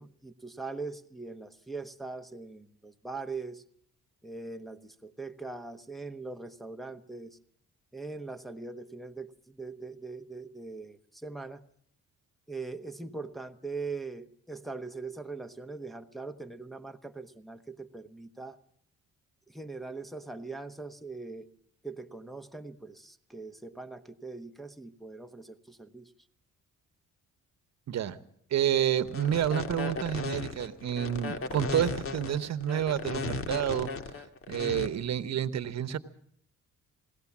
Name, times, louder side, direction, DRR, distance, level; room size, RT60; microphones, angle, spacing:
voice 1, 0.0-3.6 4.2-7.4 7.9-11.6 12.5-18.6 19.5-21.5 21.8-26.1, right 3 dB, ahead, 5 dB, 1.2 m, -41 dB
voice 2, 27.9-28.2 28.5-33.9 34.5-36.0, right 10 dB, 60° right, 13 dB, 1.1 m, -29 dB
sound 1, 29.1-34.9, left 4 dB, 45° left, 2.0 m, -35 dB
21.0 x 17.0 x 7.3 m, 0.66 s
cardioid pair, 90°, 30 cm